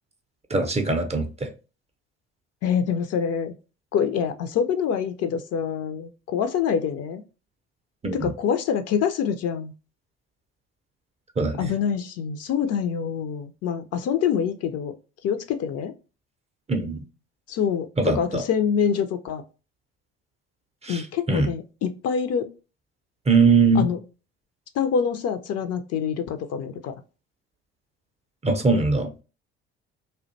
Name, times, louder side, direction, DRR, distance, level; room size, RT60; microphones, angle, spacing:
voice 1, 0.5-1.5 8.0-8.3 11.4-11.7 16.7-17.0 18.0-18.4 20.8-21.0 21.3-21.5 23.3-23.9 28.4-29.1, right 4 dB, 20° right, 0.5 m, -21 dB
voice 2, 2.6-3.5 3.9-7.2 8.1-9.7 11.6-14.9 15.2-15.9 17.5-19.4 20.9-22.5 23.7-24.0 24.7-26.9, left 7 dB, 50° left, 0.4 m, -25 dB
2.4 x 2.1 x 2.5 m
hypercardioid pair, 55°, 33 cm